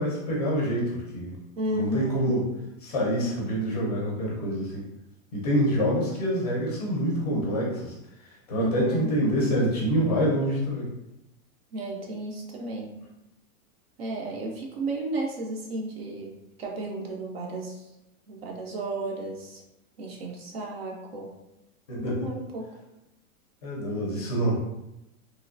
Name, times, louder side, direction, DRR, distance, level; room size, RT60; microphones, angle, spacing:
voice 1, 0.0-1.3 1.7-2.5 2.8-4.8 5.3-7.9 8.2-10.9 21.9-22.3 23.6-24.7, equal, 30° left, -4 dB, 0.5 m, -26 dB
voice 2, 1.6-2.4 8.6-9.1 11.7-12.9 14.0-17.8 18.3-19.6 20.0-21.3 22.0-22.7, right 2 dB, 50° right, 0 dB, 0.4 m, -33 dB
3.0 x 2.7 x 2.5 m, 0.90 s
supercardioid pair, 180°, 42 cm